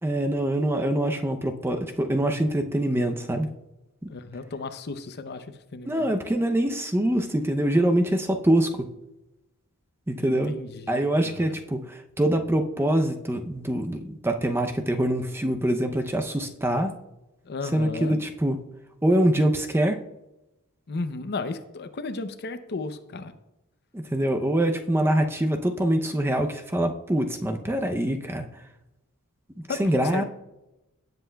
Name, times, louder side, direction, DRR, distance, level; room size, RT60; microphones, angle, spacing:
voice 1, 0.0-3.5 5.8-8.9 10.1-10.6 10.9-16.9 17.7-18.6 19.0-20.0 23.9-28.5 29.7-30.2, right 1 dB, 10° right, 5 dB, 0.6 m, -24 dB
voice 2, 4.1-5.5 5.7-6.1 10.2-11.5 17.5-18.2 20.9-23.3 29.7-30.2, left 3 dB, 50° left, 10 dB, 0.6 m, -34 dB
17.0 x 7.8 x 2.3 m, 0.94 s
head